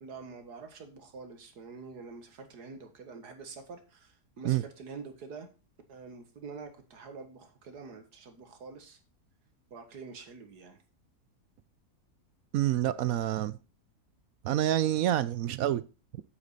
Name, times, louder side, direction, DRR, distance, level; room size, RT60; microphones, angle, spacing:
voice 1, 0.0-5.5 5.9-9.0 9.7-10.8, right 4 dB, 90° right, 2.1 m, -46 dB
voice 2, 12.5-13.6 14.4-15.8, right 12 dB, 70° right, 1.0 m, -27 dB
8.3 x 8.2 x 4.1 m
omnidirectional pair, 1.7 m